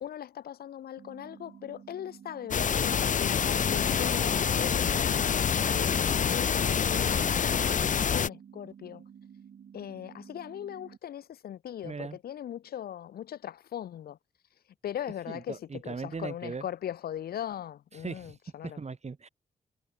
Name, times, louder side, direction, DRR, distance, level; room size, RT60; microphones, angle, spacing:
voice 1, 0.0-9.0 9.7-14.2 14.8-18.8, left 10 dB, 85° left, 0.8 m, -39 dB
sound 1, 1.0-11.0, right 8 dB, 75° right, 6.3 m, -51 dB
sound 2, 2.5-8.3, left 7 dB, 55° left, 0.7 m, -26 dB
voice 2, 11.8-12.2 15.3-16.7 18.0-18.4 18.6-19.3, right 4 dB, 45° right, 4.6 m, -38 dB
cardioid pair, 65°, 16 cm